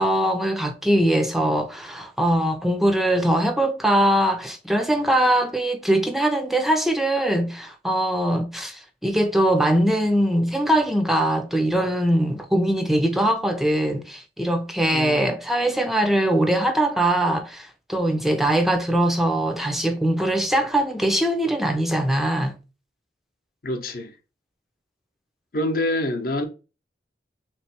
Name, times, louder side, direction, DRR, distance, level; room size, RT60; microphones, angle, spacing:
voice 1, 0.0-22.6, right 1 dB, ahead, 0.4 m, -22 dB
voice 2, 14.9-15.3 23.6-24.1 25.5-26.5, left 1 dB, 50° left, 0.7 m, -26 dB
3.4 x 3.1 x 4.4 m
head